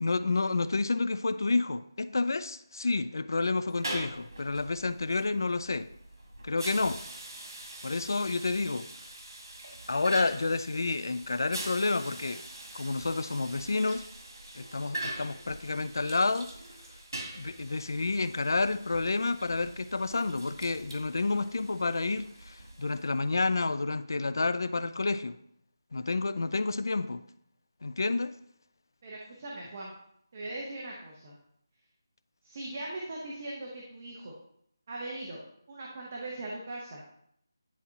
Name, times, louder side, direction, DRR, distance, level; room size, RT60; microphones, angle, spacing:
voice 1, 0.0-5.9 6.4-7.0 7.8-8.9 9.9-12.4 12.7-14.0 14.6-16.5 17.4-25.4 25.9-27.2 27.8-28.3, left 3 dB, 65° left, 0.4 m, -29 dB
sound 1, 3.7-23.3, right 1 dB, 85° right, 1.8 m, -43 dB
voice 2, 29.0-29.9 30.3-31.3 32.4-34.3 34.9-35.4 35.7-37.0, right 2 dB, 30° right, 0.9 m, -40 dB
10.5 x 4.1 x 2.8 m
figure-of-eight pair, 175°, 2 cm